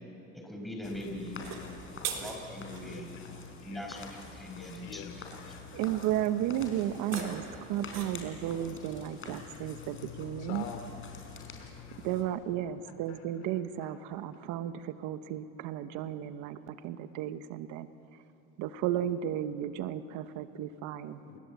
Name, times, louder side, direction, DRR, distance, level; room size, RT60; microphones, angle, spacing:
voice 1, 0.3-1.5 1.9-3.1 3.6-5.6, left 1 dB, ahead, 1 dB, 4.9 m, -42 dB
sound 1, 0.8-12.2, left 5 dB, 40° left, 5.0 m, -46 dB
sound 2, 1.3-2.9 6.8-8.3, right 8 dB, 55° right, 3.8 m, -41 dB
voice 2, 2.8-3.3 3.6-4.0 4.4-6.0 10.4-10.9 11.4-12.0 13.1-13.2 21.2-21.4, left 8 dB, 85° left, 8 dB, 2.7 m, -47 dB
voice 3, 5.7-10.7 12.0-17.9 18.6-21.2, right 11 dB, 75° right, 11 dB, 1.0 m, -34 dB
28.5 x 20.5 x 8.3 m, 2.9 s
supercardioid pair, 110°, 31 cm